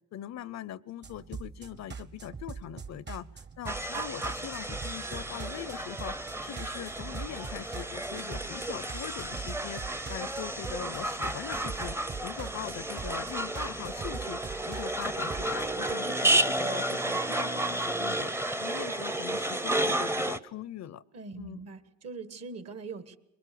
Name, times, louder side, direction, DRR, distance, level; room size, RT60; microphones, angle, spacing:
voice 1, 0.1-12.0 12.2-14.4 14.7-18.3 18.6-21.0 21.4-21.6, left 11 dB, 60° left, 21 dB, 0.7 m, -41 dB
sound 1, 1.0-15.9, right 5 dB, 35° right, 1.2 m, -43 dB
sound 2, 3.7-20.4, right 1 dB, 10° right, 0.7 m, -32 dB
voice 2, 21.1-23.2, right 4 dB, 55° right, 12 dB, 1.7 m, -42 dB
22.5 x 21.0 x 6.8 m, 0.88 s
cardioid pair, 90°, 30 cm